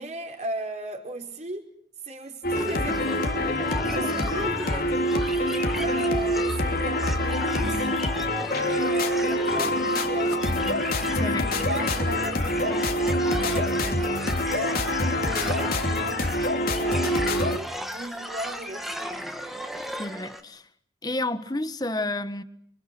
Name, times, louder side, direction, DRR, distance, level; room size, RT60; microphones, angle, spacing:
voice 1, 0.0-1.7 2.0-7.9 8.5-10.4 11.5-16.3 16.6-19.4, right 1 dB, 40° right, 5.1 m, -37 dB
sound 1, 2.4-17.6, left 1 dB, 55° left, 2.9 m, -25 dB
sound 2, 2.5-20.4, equal, ahead, 2.4 m, -35 dB
voice 2, 11.2-11.5 11.8-11.9 20.0-20.6 21.0-22.4, left 2 dB, 20° left, 1.5 m, -30 dB
28.5 x 26.0 x 6.2 m
head